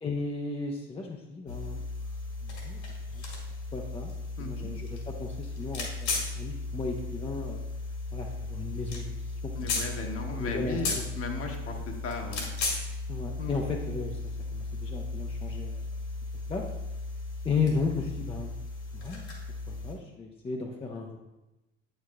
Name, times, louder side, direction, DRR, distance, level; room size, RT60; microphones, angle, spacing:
voice 1, 0.0-1.8 2.4-2.8 3.1-3.2 3.7-4.1 4.4-7.6 8.1-9.8 10.3-10.8 13.1-15.9 16.5-16.7 17.4-18.5 18.9-19.2 19.7-21.2, left 4 dB, 15° left, 1 dB, 0.6 m, -35 dB
sound 1, 1.5-19.9, left 3 dB, 65° left, 2.2 m, -35 dB
voice 2, 4.4-4.7 9.6-12.5 13.4-13.5, left 3 dB, 40° left, 3 dB, 1.1 m, -36 dB
8.5 x 6.6 x 2.3 m, 1.0 s
hypercardioid pair, 75°, 37 cm